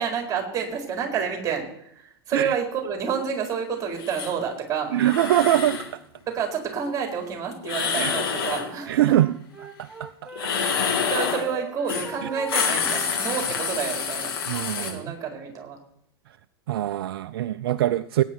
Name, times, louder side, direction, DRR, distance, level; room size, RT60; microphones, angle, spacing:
voice 1, 0.0-4.9 6.3-9.1 10.5-14.3 14.8-15.8, right 6 dB, 25° right, 2 dB, 4.4 m, -29 dB
sound 1, 4.0-4.3 5.0-5.9 7.6-8.7 10.3-11.5 11.9-12.1 12.4-14.9, left 6 dB, 70° left, 3.3 m, -27 dB
voice 2, 4.9-6.0 8.0-8.2 8.9-9.3 9.8-10.3 14.5-15.0 16.7-18.2, right 13 dB, 65° right, 13 dB, 0.5 m, -23 dB
Wind instrument woodwind instrument, 8.5-11.1 11.4-14.1, right 2 dB, 10° right, 1.6 m, -41 dB
18.0 x 9.2 x 4.6 m, 0.73 s
hypercardioid pair, 95°, 13 cm